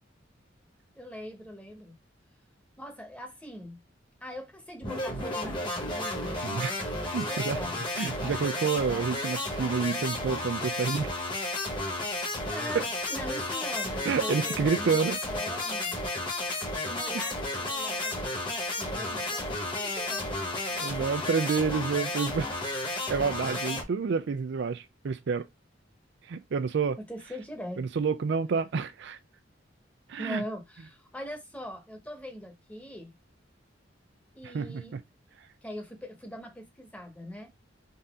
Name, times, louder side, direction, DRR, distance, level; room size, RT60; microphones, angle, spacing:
voice 1, 0.9-1.9 2.8-3.8 4.2-6.6 7.2-7.8 12.5-16.1 16.8-20.9 27.0-27.8 30.2-33.2 34.3-35.0 35.6-37.5, equal, 10° left, 1.1 m, -41 dB
sound 1, 4.8-23.8, left 2 dB, 25° left, 1.3 m, -32 dB
voice 2, 6.4-6.7 7.1-7.6 8.0-11.1 12.7-12.8 14.0-15.2 20.7-22.6 23.1-25.5 26.3-27.0 27.8-29.2 30.1-30.4 34.4-35.0, right 5 dB, 65° right, 0.4 m, -29 dB
4.0 x 2.7 x 3.6 m
head